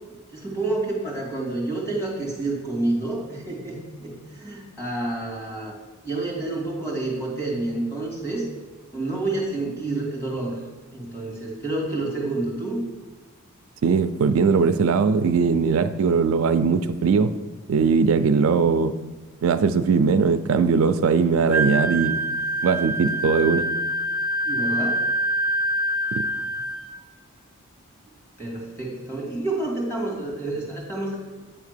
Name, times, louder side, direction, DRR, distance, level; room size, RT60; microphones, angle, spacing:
voice 1, 0.1-5.7 6.0-8.5 8.9-10.6 10.9-12.8 24.4-25.0 28.4-31.2, right 2 dB, 10° left, -3 dB, 2.2 m, -29 dB
voice 2, 13.8-17.3 17.7-18.9 19.4-22.2 22.6-23.7 26.2-26.3, right 5 dB, 70° right, 11 dB, 0.4 m, -20 dB
Wind instrument woodwind instrument, 21.5-27.0, right 1 dB, 5° right, 0.5 m, -25 dB
8.8 x 3.5 x 6.6 m, 1.3 s
head